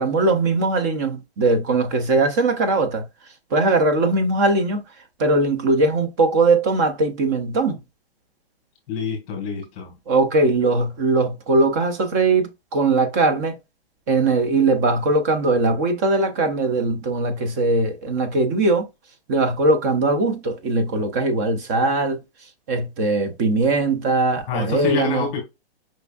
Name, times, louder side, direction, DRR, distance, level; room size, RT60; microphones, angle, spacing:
voice 1, 0.0-3.0 3.5-4.8 5.2-7.8 10.1-13.6 14.1-18.9 19.3-22.2 22.7-25.3, right 2 dB, 15° right, 0.4 m, -20 dB
voice 2, 8.9-10.0 24.4-25.4, left 6 dB, 30° left, 1.6 m, -27 dB
5.2 x 3.3 x 2.4 m
hypercardioid pair, 150°, 32 cm